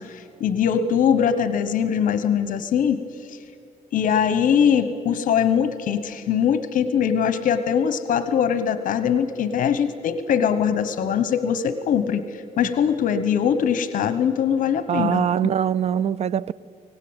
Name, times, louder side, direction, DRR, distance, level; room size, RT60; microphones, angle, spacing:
voice 1, 0.0-3.0 3.9-12.2 12.6-15.3, left 8 dB, 70° left, 1.0 m, -22 dB
voice 2, 14.9-16.5, right 9 dB, 50° right, 0.5 m, -22 dB
24.5 x 18.5 x 8.8 m
cardioid pair, 130°, 14 cm